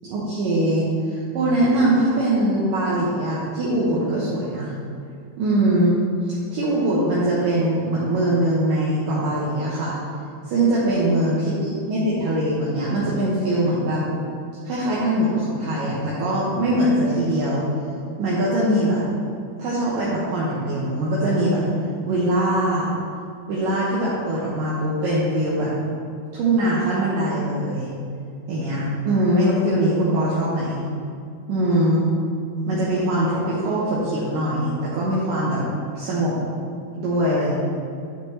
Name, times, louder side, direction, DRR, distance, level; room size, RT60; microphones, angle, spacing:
voice 1, 0.0-4.7 5.4-6.0 6.5-10.0 10.5-14.0 14.7-17.6 18.2-19.0 19.6-21.6 22.0-22.9 23.5-25.7 26.3-27.9 28.5-30.8 31.5-32.1 32.7-35.6 35.9-36.4 37.0-37.6, right 1 dB, 70° right, -7 dB, 2.4 m, -22 dB
11.0 x 5.0 x 3.2 m, 2.4 s
omnidirectional pair, 4.6 m